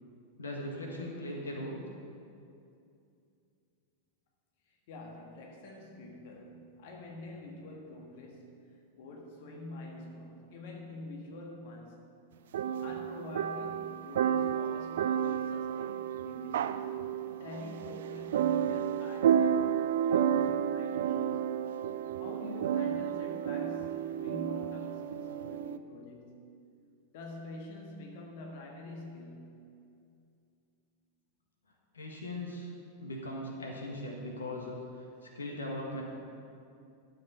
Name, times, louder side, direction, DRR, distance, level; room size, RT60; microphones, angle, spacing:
voice 1, 0.4-1.8 31.9-32.7 33.0-36.0, left 1 dB, 70° left, 0 dB, 1.6 m, -39 dB
voice 2, 4.7-8.7 8.9-12.2 12.8-16.8 17.4-21.3 22.2-26.4 27.1-29.6, left 2 dB, 50° left, 1 dB, 1.6 m, -46 dB
sound 1, 12.5-25.8, right 9 dB, 60° right, 0.4 m, -31 dB
12.5 x 7.6 x 5.6 m, 2.5 s
figure-of-eight pair, 90°, 0 cm